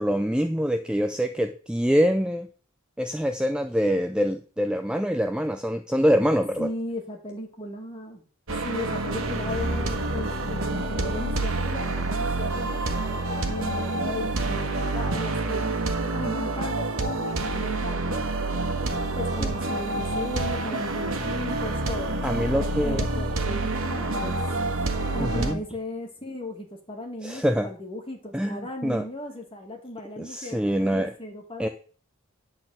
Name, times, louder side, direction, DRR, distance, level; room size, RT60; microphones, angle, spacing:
voice 1, 0.0-2.5 3.0-6.7 22.2-23.0 25.2-25.6 27.2-27.7 28.3-29.0 30.2-31.1 31.6-31.7, equal, 5° right, 6 dB, 0.4 m, -25 dB
voice 2, 6.6-8.2 8.6-12.8 13.4-15.7 16.1-18.2 19.2-24.4 25.1-31.7, left 1 dB, 25° left, 2 dB, 2.2 m, -36 dB
sound 1, 8.5-25.5, right 2 dB, 75° right, 1.5 m, -28 dB
10.5 x 4.2 x 7.7 m, 0.42 s
head